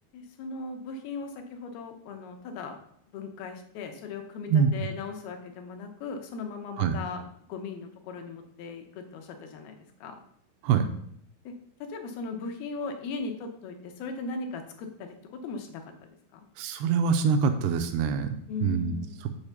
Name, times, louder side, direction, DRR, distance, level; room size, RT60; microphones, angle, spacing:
voice 1, 0.1-2.8 3.1-7.2 7.5-10.2 11.5-11.6 11.8-16.5 18.5-19.2, left 4 dB, 75° left, 4 dB, 2.7 m, -38 dB
voice 2, 16.6-18.3 18.6-18.9 19.2-19.3, right 6 dB, 85° right, 7 dB, 2.7 m, -24 dB
7.3 x 4.8 x 6.8 m, 0.69 s
omnidirectional pair, 4.7 m